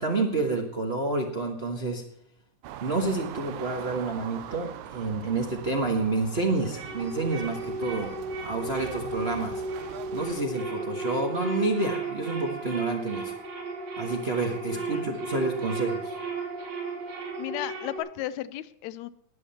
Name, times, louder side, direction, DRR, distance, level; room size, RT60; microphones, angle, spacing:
voice 1, 0.0-2.0 2.8-8.2 8.4-9.6 10.1-13.4 14.0-16.2, right 2 dB, 35° right, 1 dB, 1.0 m, -29 dB
sound 1, 2.6-10.4, right 11 dB, 85° right, 2.2 m, -42 dB
sound 2, 6.0-18.0, right 3 dB, 70° right, 4.0 m, -34 dB
voice 2, 14.8-15.1 17.4-19.1, left 14 dB, 75° left, 16 dB, 1.8 m, -35 dB
20.0 x 7.6 x 4.3 m, 0.76 s
omnidirectional pair, 3.4 m